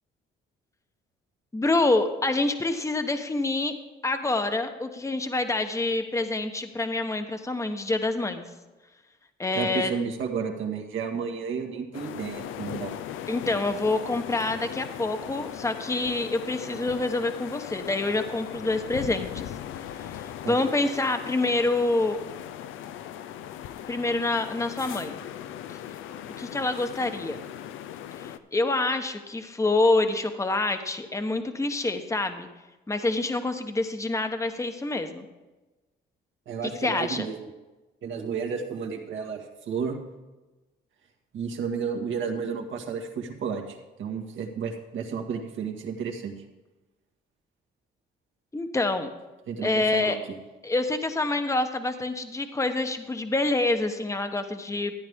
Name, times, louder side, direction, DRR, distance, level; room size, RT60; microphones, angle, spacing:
voice 1, 1.5-3.7 4.0-8.5 9.4-9.9 13.3-19.4 19.9-22.2 23.9-25.2 25.7-25.8 26.4-27.4 28.2-32.5 32.9-35.2 36.8-37.3 48.5-49.1 49.6-50.2 50.6-54.9, left 2 dB, 15° left, 7 dB, 1.0 m, -27 dB
voice 2, 9.5-12.9 20.4-20.7 36.5-37.4 38.0-40.0 41.3-46.4 49.5-50.2, right 6 dB, 75° right, 3 dB, 1.8 m, -32 dB
sound 1, 11.9-28.4, left 10 dB, 90° left, 0.6 m, -38 dB
13.5 x 9.6 x 3.6 m, 1.1 s
cardioid pair, 90°, 20 cm